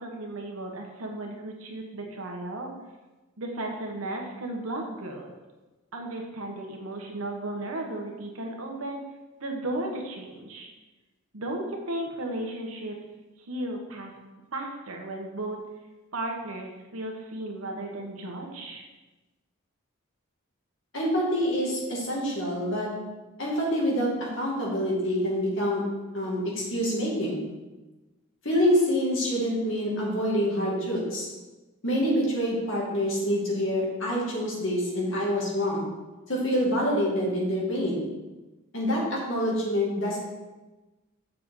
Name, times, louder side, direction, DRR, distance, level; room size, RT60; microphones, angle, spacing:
voice 1, 0.0-2.7 3.4-5.3 5.9-9.0 9.4-10.7 11.3-13.0 13.5-14.1 14.5-15.7 16.1-18.9, right 1 dB, 90° right, 1 dB, 1.3 m, -35 dB
voice 2, 20.9-22.9 23.4-25.8 26.1-27.5 28.4-31.3 31.8-35.9 36.3-38.1 38.7-40.2, equal, 65° left, -4 dB, 2.3 m, -26 dB
6.8 x 6.5 x 3.8 m, 1.1 s
head